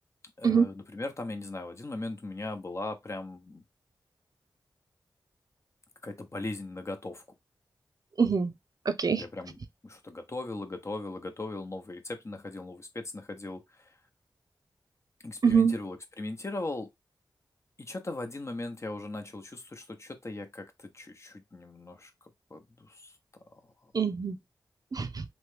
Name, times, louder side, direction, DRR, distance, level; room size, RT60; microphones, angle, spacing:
voice 1, 0.4-3.6 6.0-7.2 9.1-14.0 15.2-16.9 17.8-22.1 22.5-23.2 23.6-23.9, left 2 dB, 35° left, 0.8 m, -39 dB
voice 2, 8.2-8.5 8.9-9.2 15.4-15.7 23.9-24.4 24.9-25.2, right 6 dB, 50° right, 0.5 m, -24 dB
3.0 x 2.2 x 3.2 m
cardioid pair, 55°, 8 cm